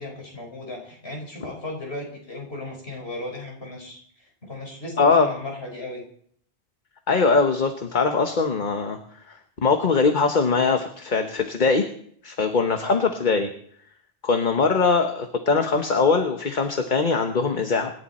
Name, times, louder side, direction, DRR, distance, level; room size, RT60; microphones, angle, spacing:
voice 1, 0.0-4.0 4.4-6.0 12.8-13.1, left 2 dB, 65° left, 0 dB, 4.8 m, -35 dB
voice 2, 5.0-5.3 7.1-9.0 9.3-11.9 12.2-13.5 14.2-17.9, left 4 dB, 45° left, 5 dB, 1.2 m, -21 dB
26.5 x 11.0 x 4.2 m, 0.63 s
omnidirectional pair, 1.1 m